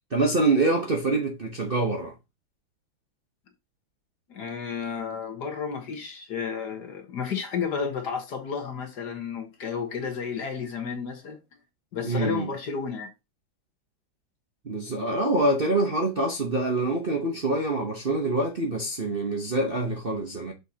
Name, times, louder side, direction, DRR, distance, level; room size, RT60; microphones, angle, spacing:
voice 1, 0.1-2.1 12.0-12.5 14.6-20.5, right 2 dB, 40° right, 0.9 m, -25 dB
voice 2, 4.3-11.4 11.9-13.1, left 6 dB, 60° left, 1.8 m, -32 dB
6.4 x 5.3 x 2.8 m
omnidirectional pair, 2.2 m